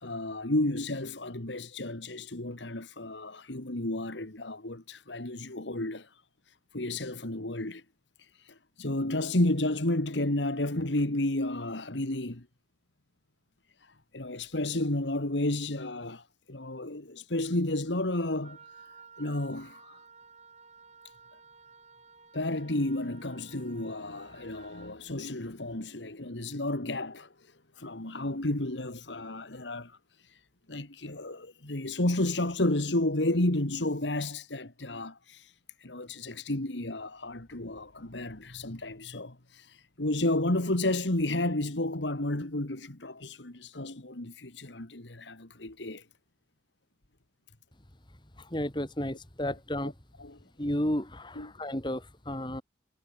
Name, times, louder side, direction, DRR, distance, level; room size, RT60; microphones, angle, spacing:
voice 1, 0.0-6.2 6.7-7.8 8.4-12.5 13.8-18.6 19.2-20.0 22.3-27.3 27.8-30.0 30.2-30.4 30.7-35.5 35.8-46.0 50.2-50.3 51.4-51.5, left 1 dB, 85° left, 2.5 m, -32 dB
Wind instrument woodwind instrument, 18.4-25.0, right 5 dB, 40° right, 7.1 m, -54 dB
voice 2, 48.4-49.9 50.6-52.6, left 1 dB, 25° left, 2.5 m, -32 dB
head